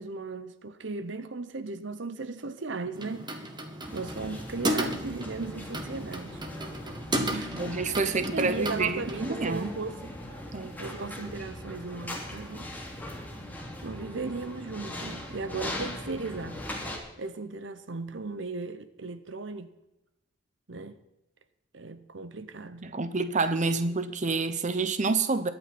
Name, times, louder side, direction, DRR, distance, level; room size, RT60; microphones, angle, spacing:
voice 1, 0.0-3.3 3.9-6.4 7.3-7.6 7.9-10.1 10.8-12.7 13.8-16.6 17.2-19.7 20.7-21.0 21.7-22.9, right 3 dB, 70° right, 0.9 m, -36 dB
sound 1, 2.9-9.2, right 1 dB, 25° right, 1.7 m, -34 dB
sound 2, 3.8-17.0, left 1 dB, 10° left, 2.8 m, -40 dB
voice 2, 7.6-9.7 10.5-10.8 22.8-25.5, right 3 dB, 40° right, 0.9 m, -28 dB
22.0 x 9.0 x 4.3 m
head